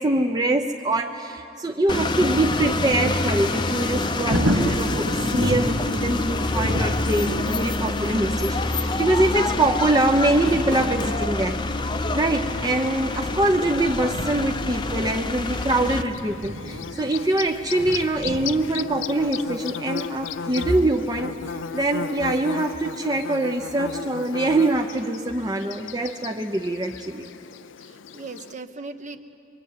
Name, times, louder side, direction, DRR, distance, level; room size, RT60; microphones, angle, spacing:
voice 1, 0.0-11.6 12.1-27.3, right 2 dB, 20° right, 2 dB, 0.8 m, -24 dB
sound 1, 1.9-16.0, left 2 dB, 25° left, 0.8 m, -26 dB
Thunder, 3.7-22.4 22.9-23.0, equal, 80° right, 2.1 m, -33 dB
Bird / Buzz, 15.6-28.5, left 6 dB, 80° left, 0.6 m, -35 dB
voice 2, 27.6-29.2, right 3 dB, 40° right, 8 dB, 1.2 m, -39 dB
24.5 x 24.0 x 9.4 m, 2.5 s
head